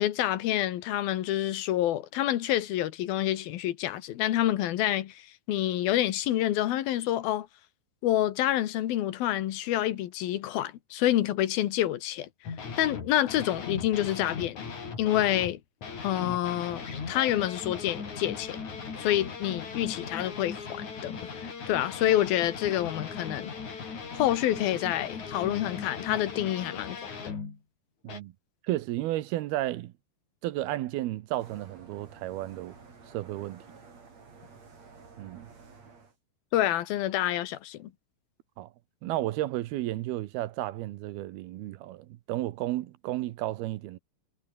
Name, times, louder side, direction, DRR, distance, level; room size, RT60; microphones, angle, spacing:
voice 1, 0.0-7.5 8.0-12.3 12.8-14.6 15.0-15.6 16.0-18.6 19.0-23.5 24.2-27.3 36.5-37.9, left 13 dB, 75° left, 3.1 m, -28 dB
sound 1, 12.4-15.6 15.8-27.6 28.1-28.2, left 5 dB, 50° left, 5.5 m, -38 dB
voice 2, 28.6-29.9 30.4-32.7 33.1-33.6 35.2-35.5 38.6-38.7 39.0-44.0, right 15 dB, 85° right, 2.9 m, -33 dB
sound 2, 31.4-36.2, right 4 dB, 45° right, 5.7 m, -52 dB
omnidirectional pair, 4.4 m